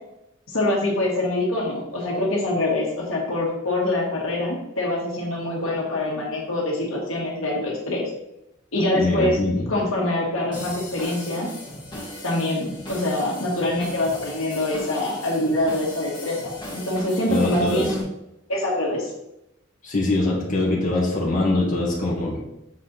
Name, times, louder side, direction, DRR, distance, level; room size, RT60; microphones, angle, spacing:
voice 1, 0.5-8.1 8.7-9.4 9.7-11.5 12.2-17.9 18.5-19.1, left 1 dB, 75° left, -2 dB, 1.8 m, -24 dB
voice 2, 8.9-9.7 17.3-17.9 19.8-22.4, left 2 dB, 40° left, -4 dB, 1.6 m, -23 dB
sound 1, 10.5-18.0, left 1 dB, 20° left, 2.1 m, -37 dB
7.3 x 4.3 x 4.1 m, 0.87 s
head